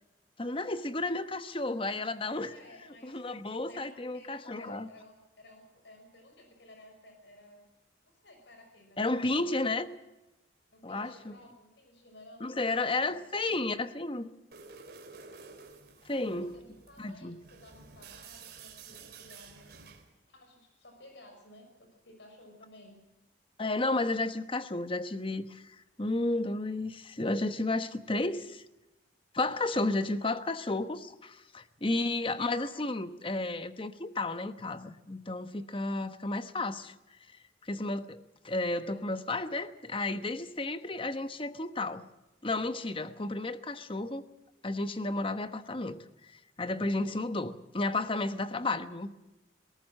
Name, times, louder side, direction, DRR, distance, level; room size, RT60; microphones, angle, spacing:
voice 1, 0.4-2.5 3.0-4.9 9.0-9.9 10.8-11.3 12.4-14.3 16.0-16.5 17.0-17.4 23.6-28.6 29.3-36.9 37.6-42.0 42.4-44.2 44.6-46.0 46.6-49.1, left 2 dB, 30° left, 1.1 m, -32 dB
voice 2, 2.4-7.7 8.0-9.5 10.7-13.3 16.1-19.9 20.3-23.0 32.0-32.3, left 1 dB, 70° left, 6.0 m, -55 dB
sound 1, 14.5-20.1, right 5 dB, 60° right, 3.5 m, -51 dB
21.0 x 18.5 x 7.5 m
head